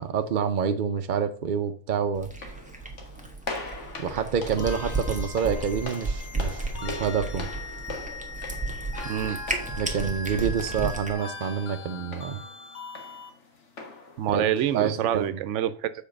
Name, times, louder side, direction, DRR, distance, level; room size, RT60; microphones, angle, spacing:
voice 1, 0.0-2.3 4.0-7.5 9.8-12.4 14.3-14.4 14.7-15.4, right 7 dB, 55° right, 0.6 m, -27 dB
sound 1, 2.2-15.3, left 3 dB, 70° left, 1.7 m, -42 dB
Cat, 2.2-11.1, right 2 dB, 5° right, 1.3 m, -33 dB
sound 2, 4.6-13.3, left 3 dB, 55° left, 1.1 m, -40 dB
voice 2, 9.0-9.4 14.2-15.9, right 10 dB, 75° right, 0.9 m, -26 dB
7.2 x 4.6 x 5.1 m
omnidirectional pair, 1.3 m